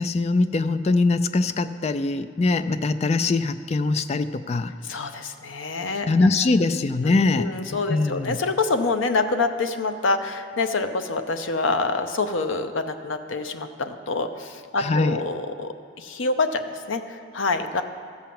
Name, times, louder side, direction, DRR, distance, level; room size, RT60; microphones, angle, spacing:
voice 1, 0.0-4.7 6.1-7.5 7.9-8.4 14.8-15.2, left 3 dB, 35° left, 11 dB, 0.3 m, -22 dB
voice 2, 4.8-6.1 7.0-17.8, left 3 dB, 85° left, 8 dB, 0.7 m, -26 dB
13.5 x 5.7 x 7.6 m, 2.2 s
head